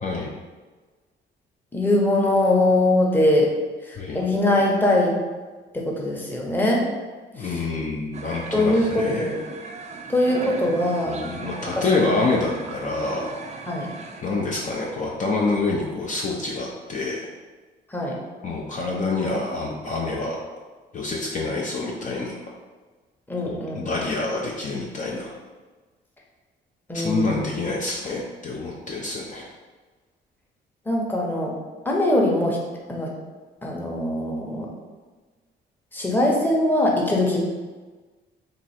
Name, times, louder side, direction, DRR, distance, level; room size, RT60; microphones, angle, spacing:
voice 1, 1.7-3.5 3.9-5.2 5.7-6.8 7.4-7.6 8.5-9.4 10.1-11.2 11.7-12.2 13.7-13.9 17.9-18.1 23.3-23.8 26.9-27.5 30.9-31.5 31.8-32.6 32.9-33.1 33.6-34.7 35.9-37.4, left 1 dB, 10° left, -2 dB, 0.8 m, -22 dB
voice 2, 4.0-4.3 7.3-9.3 11.1-13.3 14.2-17.3 18.4-20.4 20.9-22.4 23.4-25.3 26.9-29.5, left 3 dB, 40° left, -3 dB, 0.5 m, -27 dB
sound 1, 8.1-14.2, right 3 dB, 35° right, 0.4 m, -38 dB
3.0 x 2.4 x 4.2 m, 1.3 s
cardioid pair, 90°, 20 cm